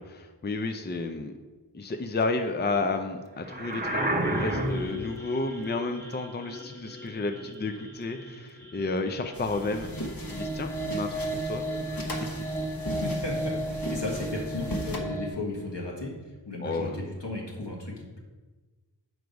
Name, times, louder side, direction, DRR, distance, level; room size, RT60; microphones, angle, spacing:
voice 1, 0.1-1.3 1.7-10.0 10.2-12.1 16.6-17.0, left 3 dB, 25° left, 6 dB, 0.5 m, -32 dB
sound 1, 3.4-15.3, right 1 dB, 5° left, 0.9 m, -36 dB
sound 2, 3.5-5.1, right 1 dB, 20° right, 0.8 m, -28 dB
sound 3, 9.3-15.0, left 1 dB, 55° left, 1.2 m, -38 dB
voice 2, 12.9-18.2, left 2 dB, 80° left, -2 dB, 1.6 m, -35 dB
6.5 x 4.7 x 5.2 m, 1.3 s
wide cardioid pair, 45°, 42 cm